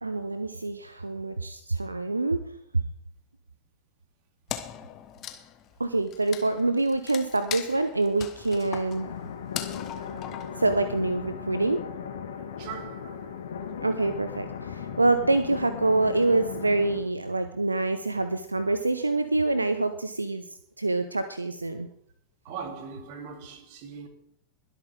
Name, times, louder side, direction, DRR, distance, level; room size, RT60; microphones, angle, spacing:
voice 1, 0.0-2.4 5.8-9.1 10.6-11.8 13.8-20.4 20.8-21.9, right 2 dB, 80° right, 0.7 m, -26 dB
Wood, 4.5-11.2, left 10 dB, 35° left, 1.3 m, -40 dB
sound 1, 9.0-17.0, left 7 dB, 60° left, 1.7 m, -37 dB
voice 2, 12.6-13.4 22.4-24.1, right 6 dB, 45° right, 2.4 m, -40 dB
21.5 x 8.3 x 3.7 m
figure-of-eight pair, 90°, 0 cm